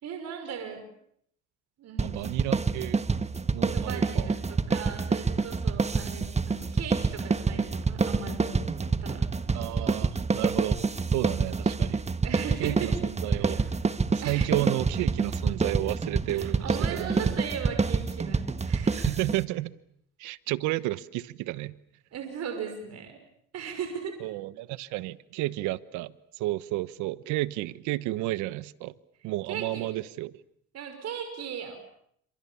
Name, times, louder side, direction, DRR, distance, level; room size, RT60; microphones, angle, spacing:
voice 1, 0.0-0.9 1.8-2.1 3.7-9.3 12.2-12.9 13.3-13.7 14.2-14.5 16.3-19.1 22.1-23.2 23.5-24.1 29.5-29.9 30.7-31.8, right 7 dB, 60° right, 5.8 m, -38 dB
sound 1, 2.0-19.4, right 4 dB, 25° right, 1.5 m, -27 dB
voice 2, 2.0-3.0 3.5-4.3 9.5-10.8 11.1-12.0 12.6-13.6 14.1-17.4 18.9-19.8 20.2-21.7 24.2-28.9 29.2-30.3, right 17 dB, 85° right, 1.1 m, -32 dB
30.0 x 27.0 x 7.2 m
supercardioid pair, 85°, 29 cm